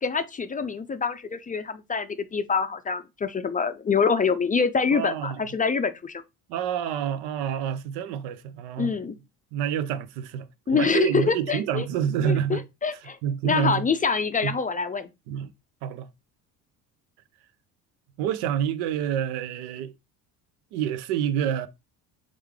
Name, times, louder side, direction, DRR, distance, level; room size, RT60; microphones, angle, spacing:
voice 1, 0.0-6.2 8.8-9.2 10.7-11.9 12.2-13.2 13.4-15.1, left 5 dB, 20° left, 0.4 m, -25 dB
voice 2, 4.9-5.4 6.5-8.9 9.5-10.5 10.7-12.6 13.2-13.8 14.4-14.5 15.3-15.5 15.8-16.1 18.2-19.9 20.7-21.7, right 9 dB, 75° right, 0.6 m, -27 dB
3.6 x 3.2 x 3.6 m
supercardioid pair, 80°, 40 cm